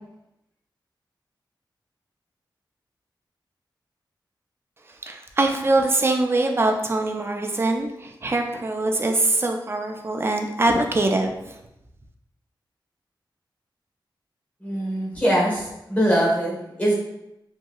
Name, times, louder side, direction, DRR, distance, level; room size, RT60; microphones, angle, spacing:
voice 1, 5.0-11.6, right 2 dB, 30° right, 3 dB, 0.4 m, -23 dB
voice 2, 14.6-16.9, equal, 20° left, -4 dB, 1.1 m, -22 dB
2.8 x 2.6 x 2.3 m, 0.88 s
wide cardioid pair, 75°, 8 cm